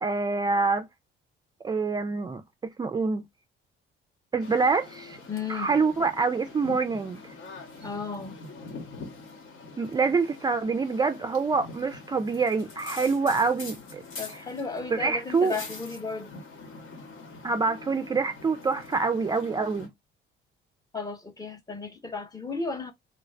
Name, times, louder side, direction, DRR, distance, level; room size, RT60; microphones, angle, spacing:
voice 1, 0.0-0.9 1.6-2.4 2.8-3.2 4.3-5.2 5.5-7.3 9.8-14.0 14.9-15.5 17.4-19.9, right 4 dB, 20° right, 0.3 m, -26 dB
sound 1, 4.4-19.9, left 3 dB, 80° left, 1.4 m, -44 dB
voice 2, 5.3-5.8 7.8-8.4 14.2-16.3 20.9-22.9, left 4 dB, 15° left, 0.6 m, -34 dB
3.1 x 2.4 x 3.2 m
cardioid pair, 130°, 21 cm